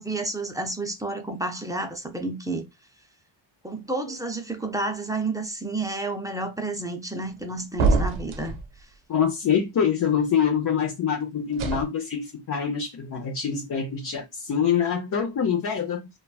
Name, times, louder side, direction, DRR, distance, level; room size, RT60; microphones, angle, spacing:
voice 1, 0.0-2.6 3.6-8.6, right 2 dB, 10° right, 0.4 m, -30 dB
sound 1, 7.8-8.7 11.5-11.8, right 3 dB, 85° right, 0.6 m, -23 dB
voice 2, 9.1-16.1, left 7 dB, 45° left, 0.7 m, -25 dB
3.0 x 2.3 x 2.3 m
cardioid pair, 80°, 47 cm